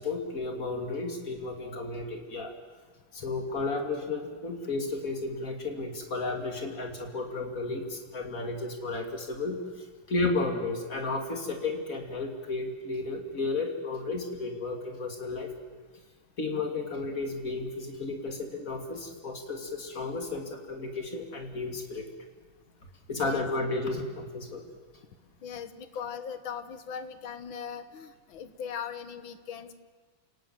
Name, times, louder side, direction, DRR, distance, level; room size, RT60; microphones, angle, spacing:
voice 1, 0.0-2.5 3.1-9.6 10.1-15.5 16.4-22.0 23.1-24.6, left 3 dB, 40° left, 4 dB, 3.1 m, -33 dB
voice 2, 23.2-23.5 25.4-29.7, left 7 dB, 70° left, 11 dB, 2.0 m, -39 dB
28.5 x 18.5 x 7.6 m, 1.5 s
omnidirectional pair, 2.3 m